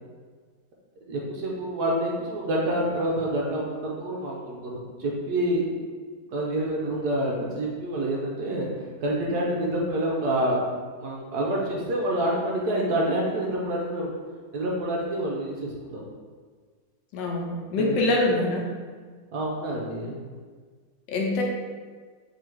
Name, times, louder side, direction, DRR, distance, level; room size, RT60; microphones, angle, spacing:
voice 1, 1.1-5.6 6.3-8.7 9.0-10.6 11.0-14.1 14.5-16.0 17.8-18.0 19.3-20.2, right 1 dB, 65° right, -3 dB, 1.2 m, -27 dB
voice 2, 17.1-18.7 21.1-21.4, left 2 dB, 80° left, -1 dB, 1.4 m, -24 dB
3.9 x 2.9 x 4.5 m, 1.6 s
omnidirectional pair, 2.0 m